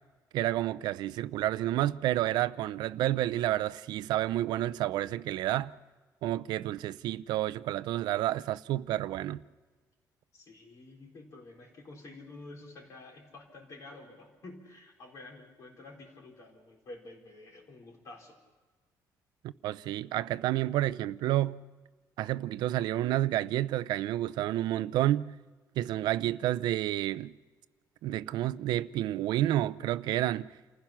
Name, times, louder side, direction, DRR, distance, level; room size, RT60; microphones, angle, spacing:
voice 1, 0.3-5.7 6.2-9.4 19.4-21.6 22.2-25.3 25.8-27.3 28.0-30.5, right 14 dB, 90° right, 0.5 m, -30 dB
voice 2, 10.3-18.4, left 2 dB, 45° left, 4.0 m, -49 dB
28.5 x 15.5 x 5.9 m
cardioid pair, 160°, 7 cm